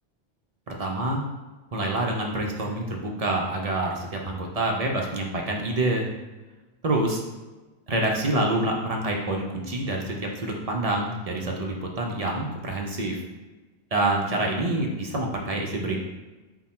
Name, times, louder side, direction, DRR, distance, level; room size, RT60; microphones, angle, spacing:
voice 1, 0.7-1.2 1.7-6.1 6.8-7.2 7.9-13.2 13.9-16.0, right 2 dB, 45° right, 0 dB, 0.5 m, -27 dB
5.7 x 2.2 x 4.2 m, 1.2 s
omnidirectional pair, 1.2 m